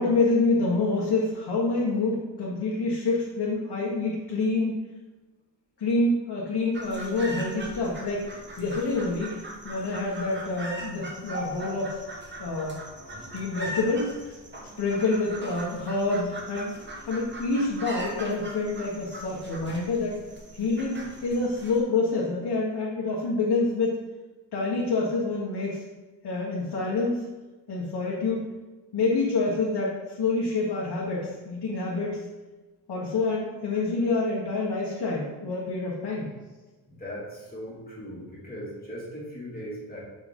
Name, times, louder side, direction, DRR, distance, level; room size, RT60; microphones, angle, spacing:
voice 1, 0.0-4.7 5.8-9.3 9.6-12.0 12.4-12.8 13.3-14.4 14.8-16.7 17.1-20.2 20.5-24.0 24.5-25.8 26.2-27.3 27.7-28.4 28.9-32.2 32.9-36.3, left 3 dB, 65° left, -6 dB, 1.4 m, -27 dB
sound 1, 6.7-21.8, right 1 dB, 25° right, 1.2 m, -40 dB
voice 2, 36.9-40.0, equal, 20° left, -6 dB, 2.1 m, -39 dB
7.3 x 5.3 x 3.7 m, 1.2 s
wide cardioid pair, 125°, 43 cm